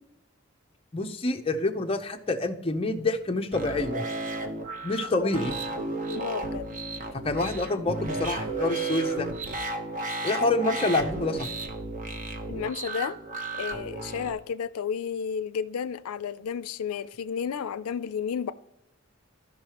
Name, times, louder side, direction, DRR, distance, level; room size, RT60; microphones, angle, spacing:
voice 1, 0.9-4.0 4.8-5.6 7.2-9.3 10.2-11.5, left 2 dB, 25° left, 0.6 m, -27 dB
sound 1, 3.5-14.3, right 2 dB, 35° right, 0.9 m, -33 dB
voice 2, 6.1-6.8 12.5-13.2 13.6-18.5, left 7 dB, 90° left, 0.4 m, -32 dB
13.5 x 5.5 x 2.9 m
head